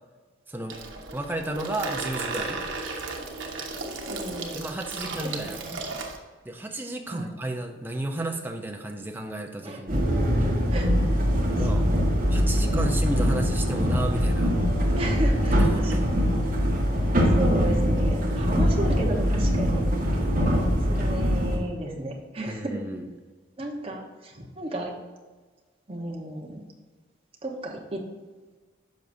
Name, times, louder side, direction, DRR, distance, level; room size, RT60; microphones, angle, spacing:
Water tap faucet / Sink (filling or washing), 0.7-6.2, right 3 dB, 85° right, 1.1 m, -34 dB
voice 1, 1.1-2.6 4.5-5.9 6.4-10.1 11.6-11.9 12.3-14.5 15.6-16.0 22.5-23.1, right 1 dB, 10° right, 3 dB, 0.6 m, -32 dB
voice 2, 4.1-4.6 5.4-5.8 7.1-7.3 9.6-10.0 10.7-11.5 12.9-13.3 14.9-15.9 16.9-17.0 17.3-19.8 20.8-22.8 23.6-24.9 25.9-26.6 27.4-28.0, right 1 dB, 30° right, -1 dB, 1.2 m, -34 dB
sound 1, 9.9-21.6, equal, 45° right, 1.5 m, -23 dB
10.5 x 6.4 x 2.7 m, 1.3 s
head